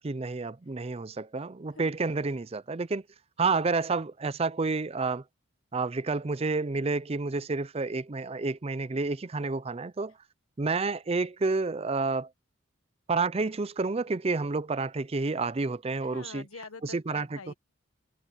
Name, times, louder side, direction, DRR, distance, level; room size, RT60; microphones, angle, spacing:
voice 1, 0.0-3.0 3.4-5.2 5.7-10.1 10.6-12.3 13.1-16.5 16.8-17.5, right 3 dB, 30° right, 0.5 m, -29 dB
voice 2, 16.0-17.5, left 4 dB, 90° left, 1.5 m, -45 dB
head